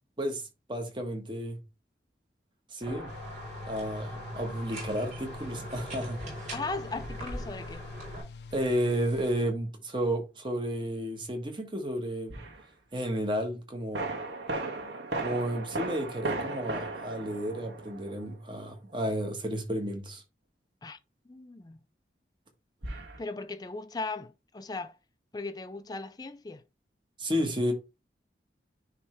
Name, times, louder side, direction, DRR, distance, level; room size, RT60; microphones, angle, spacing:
voice 1, 0.2-1.6 2.7-3.1 3.7-6.2 8.5-12.4 12.9-14.1 15.2-20.2 27.2-27.7, equal, 25° right, 1.4 m, -32 dB
sound 1, 2.8-8.2, equal, 45° right, 3.7 m, -41 dB
sound 2, 3.1-9.5, left 3 dB, 70° left, 0.6 m, -45 dB
voice 2, 6.5-7.8 20.8-21.0 21.3-21.8 23.2-25.0 25.3-26.6, left 3 dB, 20° left, 0.4 m, -37 dB
sound 3, 12.3-12.6 13.9-18.4 22.8-23.2, right 2 dB, 90° right, 1.6 m, -36 dB
9.7 x 3.3 x 3.2 m
head